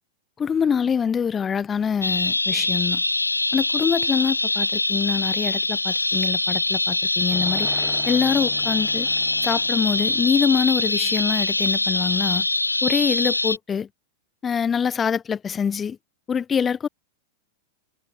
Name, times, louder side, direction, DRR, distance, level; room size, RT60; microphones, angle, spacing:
voice 1, 0.4-3.0 3.5-7.7 8.1-9.1 9.4-12.4 12.8-13.9 14.4-16.0 16.3-16.9, left 7 dB, 20° left, 2.0 m, -24 dB
sound 1, 2.0-13.6, left 2 dB, 85° left, 1.0 m, -23 dB
sound 2, 7.3-11.7, left 1 dB, 5° left, 4.5 m, -42 dB
figure-of-eight pair, 90°, 0 cm